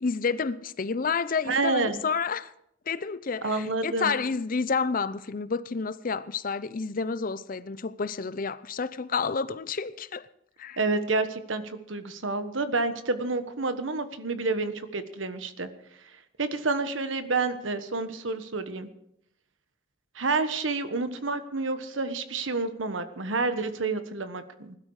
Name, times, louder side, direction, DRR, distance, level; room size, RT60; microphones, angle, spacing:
voice 1, 0.0-2.5 2.9-10.3 10.6-10.8, left 5 dB, 45° left, 0.6 m, -30 dB
voice 2, 1.5-2.0 3.4-4.1 10.8-15.7 16.4-18.9 20.1-24.8, right 3 dB, 85° right, 1.4 m, -29 dB
20.5 x 12.5 x 4.9 m
head